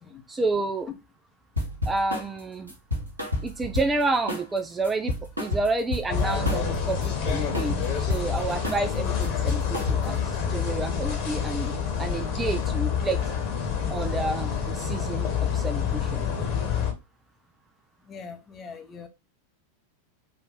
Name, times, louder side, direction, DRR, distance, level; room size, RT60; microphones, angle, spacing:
voice 1, 0.3-0.9 1.9-2.7 3.4-13.2 13.9-16.3, right 3 dB, 15° right, 0.4 m, -30 dB
sound 1, 1.6-2.3 2.7-4.0 4.3-4.6 4.8-6.8 7.0-8.3 8.6-8.9 9.2-10.2, left 2 dB, 80° right, 1.4 m, -30 dB
sound 2, 6.1-16.9, left 7 dB, 40° left, 1.2 m, -28 dB
voice 2, 18.1-19.1, left 5 dB, 25° left, 0.8 m, -42 dB
4.2 x 2.5 x 4.6 m
figure-of-eight pair, 90°, 0 cm